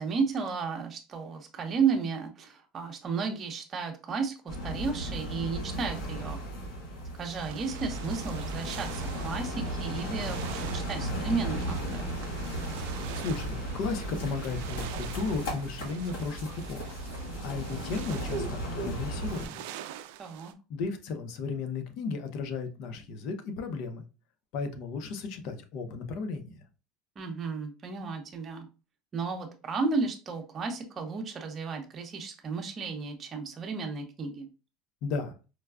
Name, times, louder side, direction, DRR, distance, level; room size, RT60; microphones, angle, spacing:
voice 1, 0.0-6.4 7.2-12.1 20.2-20.5 27.2-28.7 29.1-34.5, right 5 dB, 30° right, 3 dB, 0.8 m, -33 dB
sound 1, 4.5-19.5, right 1 dB, 90° left, 1.9 m, -35 dB
sound 2, 7.3-20.5, right 12 dB, 80° right, 0.3 m, -45 dB
voice 2, 13.1-17.0 17.4-19.6 20.7-24.0 24.5-26.6 35.0-35.4, left 4 dB, 60° left, 7 dB, 0.6 m, -35 dB
4.6 x 2.2 x 2.3 m, 0.32 s
supercardioid pair, 130°, 0 cm